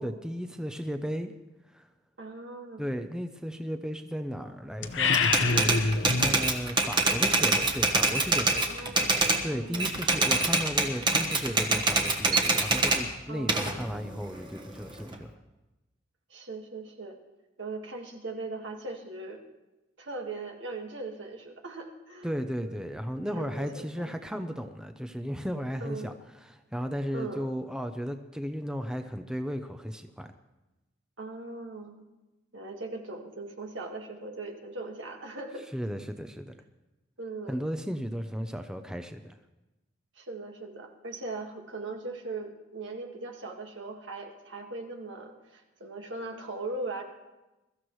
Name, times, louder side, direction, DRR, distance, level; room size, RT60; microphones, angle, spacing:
voice 1, 0.0-1.3 1.7-1.9 2.8-5.9 6.2-8.6 9.4-15.3 22.2-26.1 26.4-30.3 35.7-36.5 37.5-39.4, equal, 5° right, 7 dB, 0.6 m, -35 dB
voice 2, 2.2-2.9 8.7-9.2 9.5-9.9 13.3-13.7 16.3-17.2 17.6-19.4 20.0-22.3 22.6-22.9 23.3-24.1 25.8-26.1 27.1-27.5 31.2-32.1 32.5-35.7 37.2-37.6 40.1-47.0, right 3 dB, 75° right, 2 dB, 1.8 m, -39 dB
sound 1, 4.8-6.4, left 4 dB, 75° left, 0.9 m, -26 dB
Typewriter, 5.1-9.4 9.7-13.0 13.5-15.1, right 3 dB, 25° right, 1.3 m, -25 dB
22.5 x 13.5 x 3.2 m, 1.0 s
head